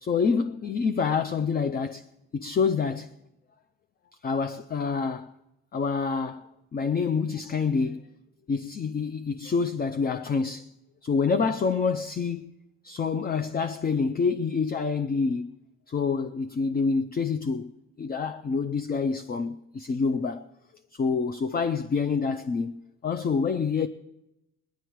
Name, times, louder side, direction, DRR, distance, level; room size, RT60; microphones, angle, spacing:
voice 1, 0.0-2.0 2.3-3.1 4.2-5.3 5.7-8.1 8.5-10.7 11.0-12.5 12.8-15.5 15.9-17.7 18.0-20.5 20.9-23.9, left 5 dB, 30° left, 0.5 m, -27 dB
18.5 x 10.5 x 4.6 m
cardioid pair, 90°, 30 cm